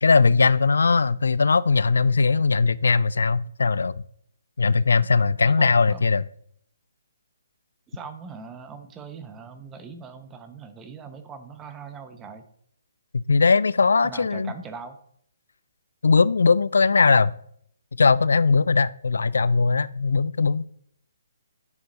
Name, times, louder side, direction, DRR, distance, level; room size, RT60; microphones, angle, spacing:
voice 1, 0.0-3.9 4.6-6.2 13.1-14.5 16.0-17.3 18.0-20.6, left 4 dB, 80° left, 19 dB, 0.3 m, -19 dB
voice 2, 5.4-6.1 7.9-12.5 14.0-15.0, right 5 dB, 15° right, 8 dB, 1.1 m, -40 dB
9.7 x 6.9 x 4.0 m, 0.67 s
hypercardioid pair, 145°, 0 cm